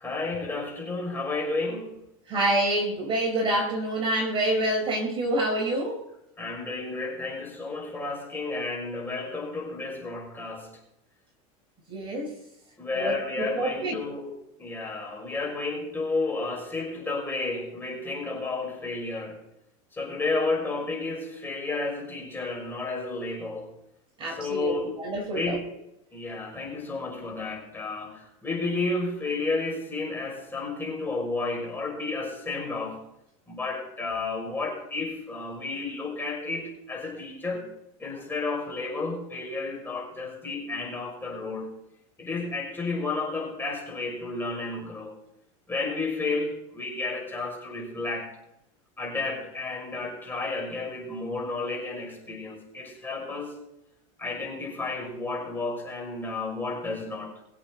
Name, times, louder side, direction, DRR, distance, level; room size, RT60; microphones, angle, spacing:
voice 1, 0.0-2.0 6.4-10.7 12.8-14.3 14.6-19.4 19.9-23.7 24.4-24.9 25.3-25.6 26.1-33.0 33.5-37.6 38.0-41.7 42.2-45.2 45.7-48.3 49.0-53.6 54.2-57.3, left 3 dB, 10° left, 5.9 m, -32 dB
voice 2, 2.3-6.1 11.9-12.4 12.9-14.0 24.2-25.6, right 1 dB, 30° right, 4.7 m, -27 dB
23.0 x 8.3 x 4.0 m
supercardioid pair, 125°, 17 cm